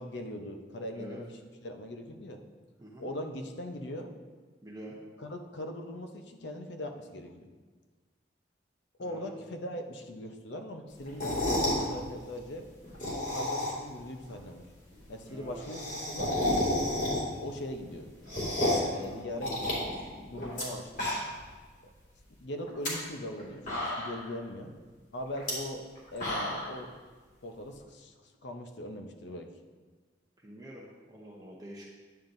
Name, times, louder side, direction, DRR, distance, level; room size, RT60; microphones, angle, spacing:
voice 1, 0.0-2.4 3.0-4.1 5.2-7.5 9.0-12.7 13.1-14.7 15.1-16.4 17.4-18.1 18.7-19.9 20.3-21.1 22.4-24.7 25.1-25.8 26.1-26.9 27.4-29.5, left 1 dB, 70° left, 5 dB, 0.7 m, -40 dB
voice 2, 2.8-3.1 4.6-5.0 9.0-9.4 15.3-15.7 18.8-19.4 30.4-31.9, equal, 20° right, -4 dB, 0.8 m, -47 dB
sound 1, 11.1-11.8 12.8-13.9 14.3-14.4 14.6-14.7 14.9-15.0 15.3-17.5 17.8-18.9 19.4-20.6 20.9-21.5 21.8-21.9 22.6-22.9 23.4-23.5 23.7-24.3 25.3-25.5 25.9-26.7, left 1 dB, 45° left, 2.2 m, -31 dB
9.7 x 7.2 x 2.6 m, 1.4 s
head